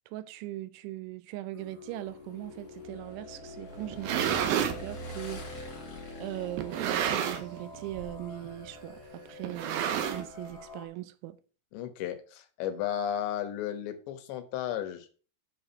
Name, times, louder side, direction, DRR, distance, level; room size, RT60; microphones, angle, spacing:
voice 1, 0.1-5.7 6.2-11.4, right 16 dB, 85° right, 3.2 m, -40 dB
sound 1, 1.5-10.9, left 2 dB, 30° right, 1.9 m, -47 dB
Motorcycle / Engine, 2.1-9.1, left 1 dB, 35° left, 3.3 m, -46 dB
sound 2, 3.8-4.8 5.6-5.7 6.6-7.6 7.9-8.2 8.4-8.5 9.4-10.5, right 9 dB, 70° right, 2.4 m, -30 dB
voice 2, 11.7-15.1, left 10 dB, 75° left, 3.4 m, -34 dB
8.9 x 4.9 x 7.0 m
omnidirectional pair, 5.3 m